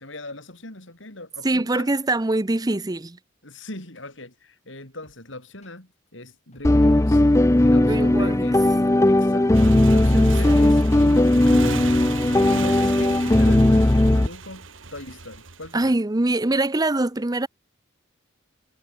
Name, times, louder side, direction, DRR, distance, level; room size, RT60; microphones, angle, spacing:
voice 1, 0.0-1.9 2.7-2.8 3.4-7.2 7.6-8.7 9.1-9.5 9.9-11.9 12.4-15.9, left 2 dB, 70° left, 7.7 m, -40 dB
voice 2, 1.4-3.2 7.8-8.4 10.1-10.7 12.2-12.4 15.7-17.5, right 2 dB, 20° right, 0.7 m, -24 dB
sound 1, 5.0-14.6, left 1 dB, 35° left, 7.7 m, -57 dB
sound 2, 6.6-14.3, left 1 dB, 15° left, 0.5 m, -17 dB
Motorcycle, 9.5-15.9, right 4 dB, 80° right, 2.9 m, -35 dB
head